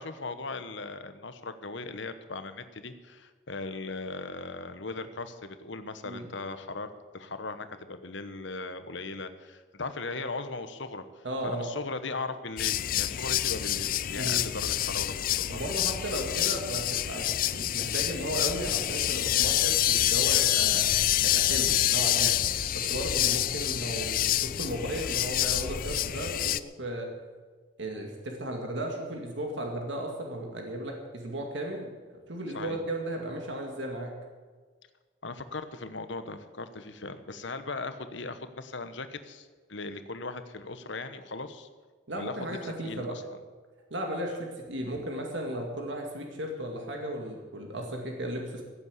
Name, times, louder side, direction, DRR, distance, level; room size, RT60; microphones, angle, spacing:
voice 1, 0.0-6.9 7.1-15.6 32.5-32.8 35.2-41.7 42.2-43.2, left 3 dB, 65° left, 10 dB, 1.1 m, -38 dB
voice 2, 11.2-11.7 14.2-14.4 15.5-20.9 21.2-22.3 22.7-27.1 27.8-34.2 42.1-43.2 43.9-48.6, right 1 dB, 65° right, 1 dB, 2.1 m, -35 dB
sound 1, 12.6-26.6, left 13 dB, 45° left, 0.4 m, -27 dB
sound 2, 18.5-23.3, equal, 10° right, 1.2 m, -44 dB
16.0 x 8.5 x 8.2 m, 1.5 s
head